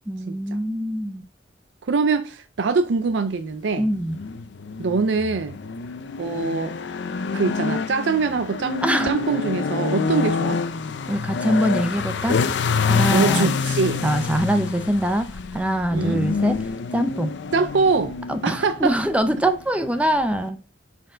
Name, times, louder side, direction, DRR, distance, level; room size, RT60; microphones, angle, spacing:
voice 1, 0.1-1.2 3.8-4.2 8.8-9.1 11.1-12.4 12.9-13.5 14.0-16.6 16.9-17.3 18.3-20.6, right 1 dB, 5° right, 0.4 m, -23 dB
voice 2, 1.8-3.9 4.8-5.6 6.2-6.8 7.3-10.6 13.1-14.0 15.9-16.2 17.5-18.2 18.4-18.9, right 4 dB, 70° right, 0.5 m, -23 dB
sound 1, 3.8-20.5, left 5 dB, 65° left, 0.5 m, -27 dB
6.2 x 4.3 x 3.8 m
head